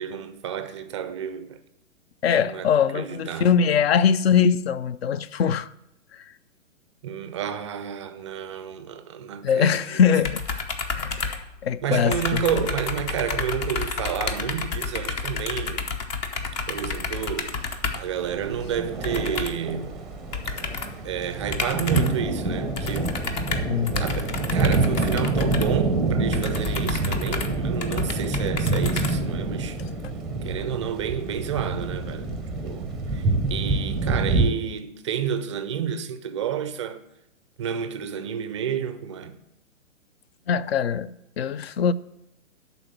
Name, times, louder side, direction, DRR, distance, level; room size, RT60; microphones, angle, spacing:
voice 1, 0.0-1.6 2.4-3.6 7.0-10.0 11.2-11.5 11.8-15.9 16.7-20.0 21.0-23.2 24.0-29.8 30.4-37.0 37.6-39.4, right 8 dB, 25° right, 0.4 m, -30 dB
voice 2, 2.2-5.7 9.4-10.4 10.9-12.4 23.7-24.0 40.5-41.1 41.4-41.9, left 7 dB, 55° left, 0.5 m, -22 dB
sound 1, 10.2-11.8 12.1-18.1 19.0-19.7 20.3-21.0 21.5-22.3 22.8-29.6, left 4 dB, 35° left, 0.8 m, -31 dB
sound 2, 16.4-34.5, right 3 dB, ahead, 0.8 m, -27 dB
11.0 x 4.0 x 7.4 m
hypercardioid pair, 125°, 39 cm